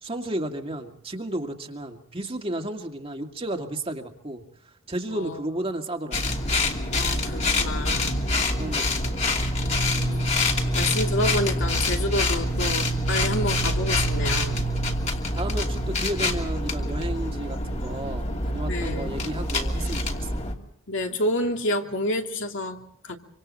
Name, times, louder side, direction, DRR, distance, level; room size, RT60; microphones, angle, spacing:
voice 1, 0.0-4.4 4.9-6.2 8.5-9.2 14.7-15.0 15.3-20.4, right 1 dB, 30° right, 3 dB, 2.1 m, -33 dB
sound 1, 6.1-20.5, left 1 dB, 35° left, 2.8 m, -25 dB
voice 2, 6.9-8.3 9.8-14.7 18.6-19.1 20.9-23.2, left 1 dB, 65° left, 3 dB, 2.7 m, -29 dB
26.5 x 26.0 x 4.3 m, 0.69 s
head